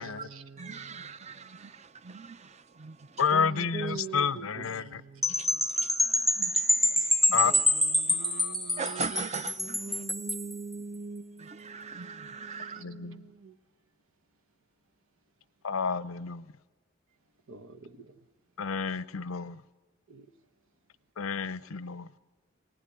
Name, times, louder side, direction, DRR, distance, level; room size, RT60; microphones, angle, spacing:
voice 1, 0.0-1.1 3.3-5.4 7.4-9.2 9.6-13.5 17.5-18.1 20.1-20.3, right 4 dB, 80° right, 1.1 m, -43 dB
voice 2, 0.6-3.2 5.3-7.4 8.1-8.2 8.8-10.0 11.4-12.8, right 5 dB, 35° right, 0.7 m, -41 dB
voice 3, 3.2-5.0 7.3-7.8 8.2-8.5 12.8-13.2 15.6-16.4 18.6-19.6 21.2-22.1, left 6 dB, 85° left, 0.7 m, -30 dB
sound 1, 5.2-10.5, left 1 dB, ahead, 0.8 m, -26 dB
23.5 x 19.0 x 9.9 m
head